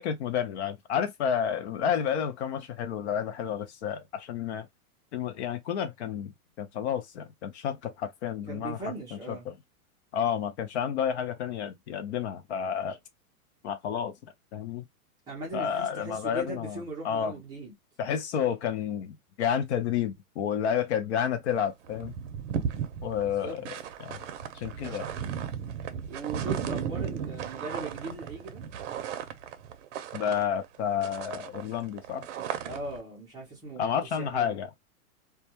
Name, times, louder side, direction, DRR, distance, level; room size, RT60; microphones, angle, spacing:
voice 1, 0.0-4.7 5.1-6.3 6.6-8.8 9.5-9.6 10.1-13.0 13.6-14.1 14.5-14.8 15.5-17.3 18.0-22.1 23.0-23.6 24.0-24.2 24.5-25.1 30.1-32.3 33.8-34.7, left 8 dB, 50° left, 0.4 m, -30 dB
voice 2, 8.5-9.5 15.3-17.7 23.2-23.6 26.1-28.6 32.7-33.9 34.2-34.6, right 3 dB, 10° right, 0.4 m, -39 dB
sound 1, 21.5-21.6 21.8-30.8 31.0-33.0, right 8 dB, 55° right, 0.6 m, -35 dB
2.2 x 2.1 x 2.8 m
hypercardioid pair, 145°, 44 cm